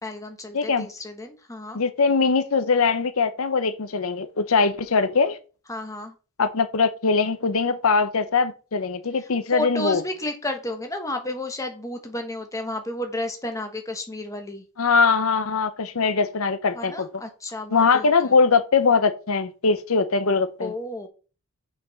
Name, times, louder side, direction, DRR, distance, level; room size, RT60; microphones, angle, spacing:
voice 1, 0.0-1.8 5.7-6.1 9.5-14.6 16.7-18.4 20.6-21.1, left 2 dB, 15° left, 1.2 m, -32 dB
voice 2, 0.5-0.9 1.7-5.4 6.4-10.0 14.8-17.1 17.7-20.7, left 4 dB, 70° left, 0.7 m, -21 dB
6.3 x 5.0 x 5.6 m
head